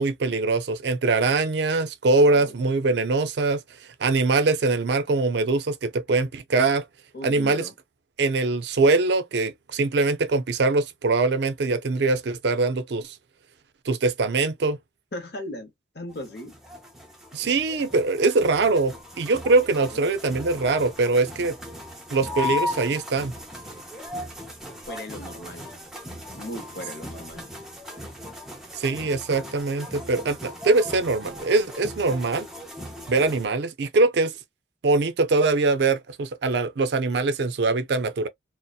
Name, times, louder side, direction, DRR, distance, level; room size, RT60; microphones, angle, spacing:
voice 1, 0.0-3.6 4.0-6.8 7.2-7.7 8.2-13.2 13.9-14.8 17.3-21.6 22.1-23.3 28.7-32.5 33.1-34.3 34.8-38.3, right 3 dB, 65° right, 0.4 m, -22 dB
voice 2, 7.1-7.7 15.1-16.5 19.9-20.2 24.9-25.7 26.4-27.4, left 1 dB, 55° left, 0.7 m, -37 dB
sound 1, 16.1-33.5, left 2 dB, ahead, 0.6 m, -37 dB
2.7 x 2.0 x 2.3 m
head